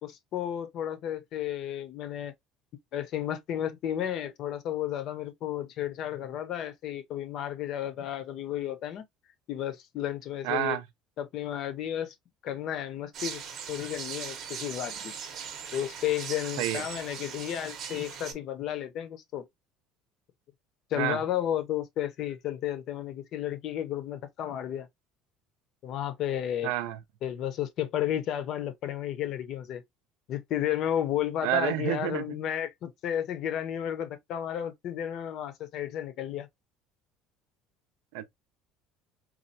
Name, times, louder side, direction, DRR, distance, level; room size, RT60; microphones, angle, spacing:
voice 1, 0.0-2.3 2.9-9.0 9.5-10.8 11.2-12.1 12.4-13.4 13.7-15.1 15.7-19.5 20.9-24.9 25.8-26.7 27.2-29.8 30.3-36.5, left 11 dB, 40° left, 0.5 m, -32 dB
voice 2, 10.4-10.8 16.6-16.8 21.0-21.2 26.6-27.0 31.4-32.2 38.1-38.3, right 13 dB, 80° right, 0.5 m, -29 dB
sound 1, 13.1-18.3, right 7 dB, 40° right, 0.7 m, -39 dB
4.2 x 2.3 x 2.6 m
cardioid pair, 180°, 0 cm